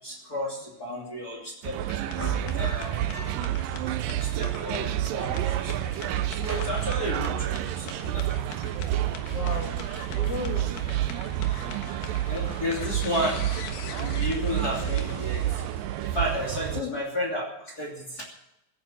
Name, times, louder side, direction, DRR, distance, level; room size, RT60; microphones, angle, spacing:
voice 1, 0.0-1.8 2.5-3.0 4.2-8.3 10.8-10.9 12.3-13.4 14.0-15.4 16.0-18.2, left 1 dB, 30° left, -2 dB, 3.2 m, -32 dB
sound 1, 1.6-16.8, right 13 dB, 85° right, 2.4 m, -29 dB
sound 2, 1.8-16.7, left 7 dB, 75° left, 3.0 m, -43 dB
sound 3, 2.0-3.6 3.9-4.0 4.2-5.2 5.5-5.9 6.2-7.6 8.8-9.2, right 1 dB, 5° left, 3.1 m, -40 dB
voice 2, 9.3-10.9 16.8-17.0, left 6 dB, 50° left, 2 dB, 2.4 m, -36 dB
17.0 x 9.4 x 8.1 m, 0.86 s
omnidirectional pair, 3.8 m